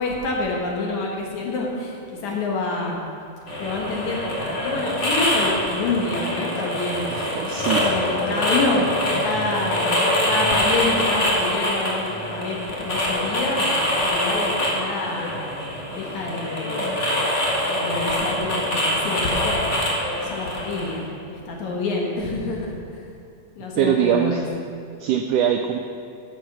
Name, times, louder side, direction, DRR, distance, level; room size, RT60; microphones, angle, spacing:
voice 1, 0.0-3.0 3.6-7.1 7.8-8.9 9.2-10.0 10.2-15.3 15.9-16.7 17.7-19.7 20.2-23.1 23.6-24.4, left 3 dB, 60° left, -1 dB, 2.4 m, -27 dB
sound 1, 3.5-21.0, left 1 dB, 35° left, 1.2 m, -24 dB
voice 2, 7.1-7.9 23.8-24.4 25.0-25.8, right 9 dB, 85° right, 5 dB, 1.8 m, -22 dB
12.5 x 7.2 x 6.1 m, 2.5 s
omnidirectional pair, 4.2 m